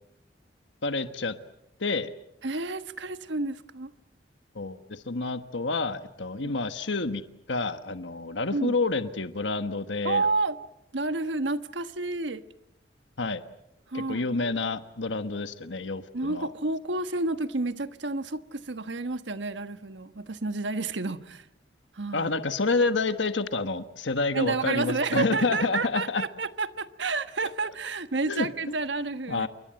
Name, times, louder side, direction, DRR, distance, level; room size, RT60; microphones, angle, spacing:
voice 1, 0.8-1.3 1.8-2.1 4.5-7.2 7.5-10.3 13.2-13.4 13.9-16.5 22.1-26.2 28.2-28.5 29.3-29.5, left 3 dB, 90° left, 1.3 m, -28 dB
voice 2, 2.4-3.9 6.4-6.5 8.5-8.7 10.0-10.6 10.9-12.4 13.9-14.3 16.1-21.5 21.9-22.3 24.3-29.5, right 3 dB, 85° right, 1.3 m, -30 dB
28.5 x 24.0 x 7.8 m
head